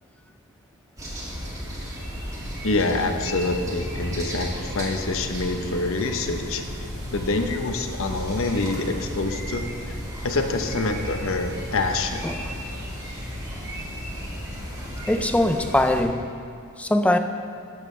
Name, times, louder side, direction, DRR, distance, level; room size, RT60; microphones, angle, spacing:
sound 1, 1.0-16.0, equal, 15° right, 2.0 m, -35 dB
sound 2, 2.4-15.9, left 1 dB, 30° left, 0.9 m, -39 dB
voice 1, 2.6-6.6 7.1-9.9 10.2-12.2, left 2 dB, 65° left, 6 dB, 0.9 m, -26 dB
voice 2, 12.2-12.6 15.1-16.3 16.8-17.2, left 1 dB, 5° left, 7 dB, 0.4 m, -22 dB
13.0 x 10.5 x 3.3 m, 2.3 s
head